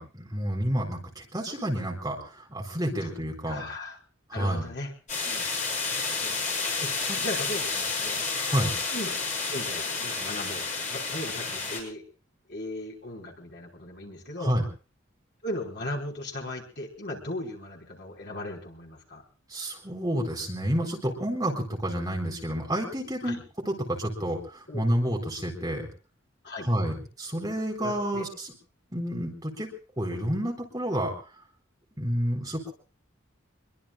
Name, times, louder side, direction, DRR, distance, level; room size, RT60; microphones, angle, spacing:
voice 1, 0.0-3.6 4.3-4.6 7.1-7.2 8.3-8.7 14.4-14.6 19.5-23.4 23.7-25.9 26.6-28.5 28.9-29.7 30.0-31.1 32.0-32.7, equal, 20° right, 1 dB, 3.9 m, -29 dB
voice 2, 3.4-4.0 4.3-4.9 5.2-5.5 6.2-6.9 7.2-8.2 8.9-9.2 9.5-12.0 12.5-14.6 15.4-19.2 23.2-23.4 24.7-24.9 26.4-26.7 27.8-28.3, left 1 dB, 55° left, 0 dB, 5.1 m, -37 dB
sound 1, 5.1-11.8, left 4 dB, 35° left, 7.2 m, -30 dB
26.5 x 22.5 x 2.5 m, 0.39 s
head